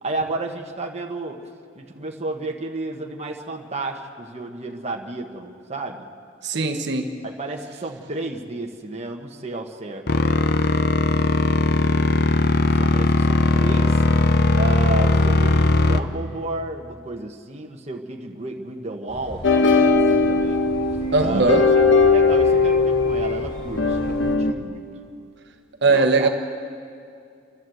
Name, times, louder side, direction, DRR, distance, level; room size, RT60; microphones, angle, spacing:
voice 1, 0.0-1.4 1.7-6.1 7.2-10.1 12.7-14.0 14.5-20.6 21.2-24.8 25.8-26.3, right 2 dB, 35° right, 2 dB, 1.2 m, -32 dB
voice 2, 6.4-7.1 21.1-21.6 25.8-26.3, right 3 dB, 60° right, 6 dB, 1.2 m, -19 dB
sound 1, 10.1-16.0, left 2 dB, 55° left, 0.8 m, -18 dB
sound 2, 19.1-24.4, equal, 25° left, 2.8 m, -37 dB
sound 3, 19.4-24.5, left 3 dB, 75° left, 1.1 m, -19 dB
28.5 x 12.0 x 7.9 m, 2.4 s
head